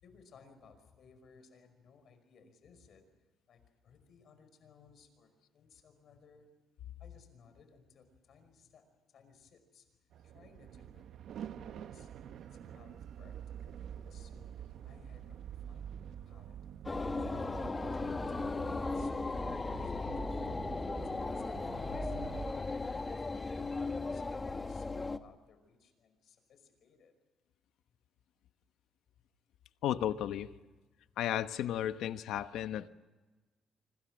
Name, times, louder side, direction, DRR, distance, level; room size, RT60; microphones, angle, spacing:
voice 1, 0.0-3.1 3.5-6.5 7.0-9.9 10.2-11.0 11.6-12.3 12.5-16.6 17.3-20.7 21.0-22.4 23.1-27.1, left 5 dB, 55° left, 8 dB, 5.3 m, -62 dB
sound 1, 10.1-22.5, right 9 dB, 65° right, 0.8 m, -47 dB
sound 2, 16.8-25.2, left 3 dB, 20° left, 1.1 m, -37 dB
voice 2, 29.8-30.5 31.2-32.9, left 11 dB, 80° left, 11 dB, 1.0 m, -34 dB
26.5 x 26.0 x 6.3 m, 1.2 s
cardioid pair, 140°, 0 cm